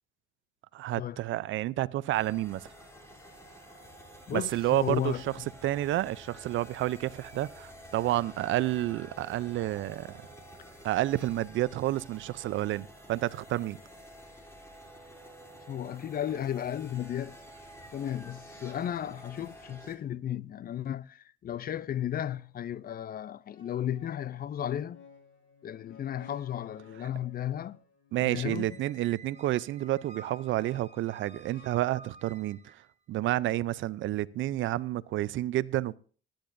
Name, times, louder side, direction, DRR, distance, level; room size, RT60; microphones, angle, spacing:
voice 1, 0.7-2.7 4.3-5.2 5.6-10.2 10.8-13.8 28.1-32.6 33.1-36.0, right 15 dB, 75° right, 0.5 m, -30 dB
sound 1, 2.1-20.0, equal, 15° left, 3.3 m, -50 dB
voice 2, 4.3-5.5 15.7-17.3 17.9-25.0 25.6-27.8 28.2-28.8, left 10 dB, 50° left, 0.5 m, -34 dB
sound 2, 23.5-31.7, left 5 dB, 70° left, 3.3 m, -56 dB
Squeak, 28.5-32.9, right 3 dB, 35° right, 1.1 m, -52 dB
21.5 x 10.5 x 2.6 m
cardioid pair, 90°, 20 cm